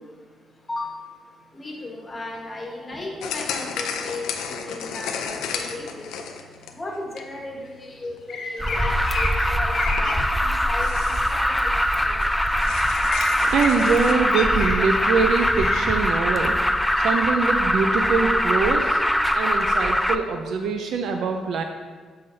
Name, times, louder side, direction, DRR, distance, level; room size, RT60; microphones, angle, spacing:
voice 1, 1.5-4.2 4.6-6.1 6.7-10.9 11.3-11.7 12.1-12.2, left 2 dB, 25° left, -1 dB, 1.3 m, -35 dB
sound 1, 3.2-7.6 8.0-8.2 9.0-9.1 9.2-9.3 9.9-10.3 10.8-11.6 11.9-12.0 12.2-14.1, left 6 dB, 90° left, 0.5 m, -33 dB
sound 2, 8.3-10.1 12.7-12.8 13.0-13.7 14.3-15.0 15.4-15.8, left 4 dB, 65° left, 0.9 m, -31 dB
Alarm, 8.6-20.1, equal, 5° left, 0.3 m, -22 dB
voice 2, 13.4-16.6 17.0-19.0 19.3-21.6, right 5 dB, 75° right, 5 dB, 0.4 m, -23 dB
7.5 x 5.6 x 2.7 m, 1.5 s
cardioid pair, 90°, 0 cm